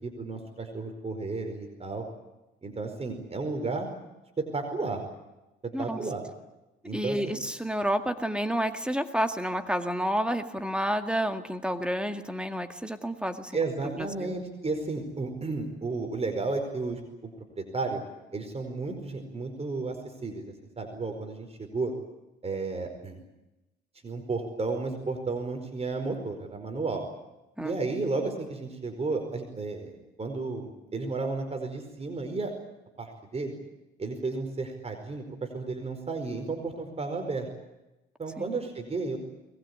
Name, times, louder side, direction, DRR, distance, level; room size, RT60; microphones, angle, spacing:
voice 1, 0.0-2.0 2.6-3.9 4.4-5.0 5.8-6.2 6.8-7.2 13.5-17.0 17.6-18.0 18.3-21.9 22.4-23.2 24.0-27.0 27.6-32.5 33.0-33.5 34.0-37.5 38.2-39.2, right 3 dB, 30° right, 5 dB, 4.9 m, -33 dB
voice 2, 6.9-14.3 27.6-27.8 38.4-38.6, equal, 5° right, 7 dB, 2.0 m, -30 dB
22.5 x 20.5 x 9.8 m, 0.98 s
cardioid pair, 90°, 20 cm